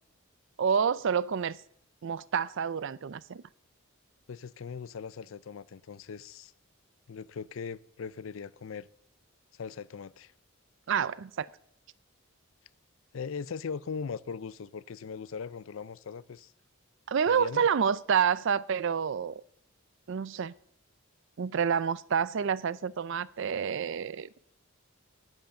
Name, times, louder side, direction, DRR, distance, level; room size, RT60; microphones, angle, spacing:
voice 1, 0.6-1.6 2.0-3.4 10.9-11.5 17.1-19.4 20.1-20.5 21.4-24.5, right 7 dB, 60° right, 0.4 m, -28 dB
voice 2, 4.3-6.5 7.1-8.9 9.5-10.3 13.1-16.5 17.3-17.6, left 6 dB, 65° left, 0.4 m, -39 dB
10.5 x 10.5 x 7.0 m
head